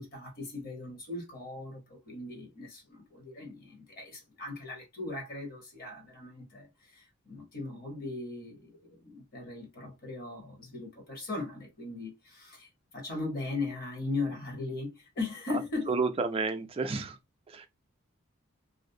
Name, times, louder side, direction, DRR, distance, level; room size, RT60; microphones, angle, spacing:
voice 1, 0.0-6.7 6.9-15.9, left 3 dB, 45° left, 0.9 m, -38 dB
voice 2, 15.9-17.2 17.5-17.7, right 4 dB, 25° right, 0.3 m, -30 dB
2.5 x 2.0 x 2.6 m
head